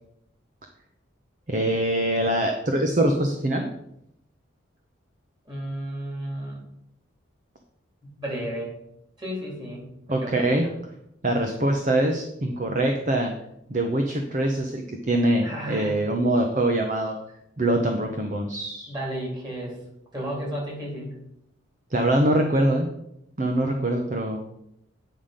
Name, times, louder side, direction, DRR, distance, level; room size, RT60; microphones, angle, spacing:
voice 1, 1.5-3.7 10.1-10.7 11.2-13.3 13.7-17.2 17.6-18.9 21.9-22.9 23.4-24.4, right 1 dB, 40° right, 3 dB, 0.8 m, -23 dB
voice 2, 5.5-6.6 8.0-8.7 9.2-10.7 15.4-15.9 18.9-19.8 20.1-21.1, right 1 dB, 20° right, -3 dB, 3.2 m, -33 dB
9.3 x 5.7 x 5.1 m, 0.79 s
head